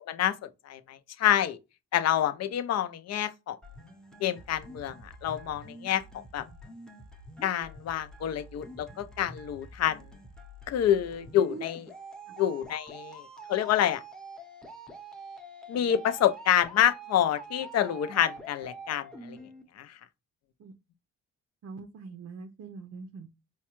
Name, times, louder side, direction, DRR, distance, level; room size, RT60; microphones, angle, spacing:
voice 1, 0.7-1.6 1.9-3.6 4.2-4.9 5.2-6.0 6.3-6.4 7.4-10.0 10.7-11.8 12.4-13.2 13.5-14.0 15.7-19.4 19.8-19.9, left 10 dB, 60° left, 0.5 m, -27 dB
sound 1, 3.6-19.6, right 2 dB, ahead, 0.7 m, -47 dB
voice 2, 21.6-23.3, right 4 dB, 55° right, 0.6 m, -43 dB
4.6 x 2.2 x 2.9 m
cardioid pair, 90°, 30 cm